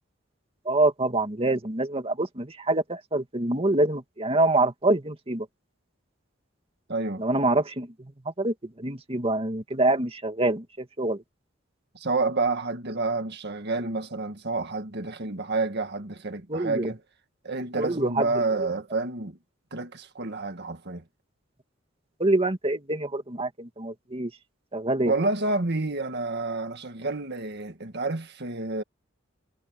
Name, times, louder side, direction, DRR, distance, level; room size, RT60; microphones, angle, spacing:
voice 1, 0.7-5.5 7.2-8.1 8.4-11.2 16.5-16.9 17.8-18.3 22.2-24.3 24.7-25.1, right 2 dB, 30° right, 2.1 m, -25 dB
voice 2, 6.9-7.2 11.9-17.0 17.4-19.4 19.7-21.0 25.0-28.8, right 3 dB, 60° right, 1.8 m, -29 dB
head